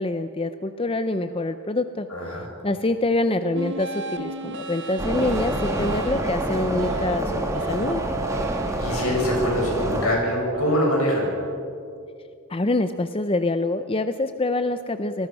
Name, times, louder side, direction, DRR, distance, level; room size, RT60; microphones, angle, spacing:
voice 1, 0.0-2.1 2.6-8.0 12.5-15.3, left 2 dB, 25° left, 10 dB, 0.6 m, -25 dB
voice 2, 2.1-2.5 8.8-11.3, left 1 dB, 80° left, 0 dB, 7.5 m, -24 dB
sound 1, 3.5-11.5, right 4 dB, 55° right, 1.7 m, -34 dB
sound 2, 5.0-10.1, right 1 dB, 15° right, 2.3 m, -27 dB
28.5 x 20.0 x 6.2 m, 2.4 s
head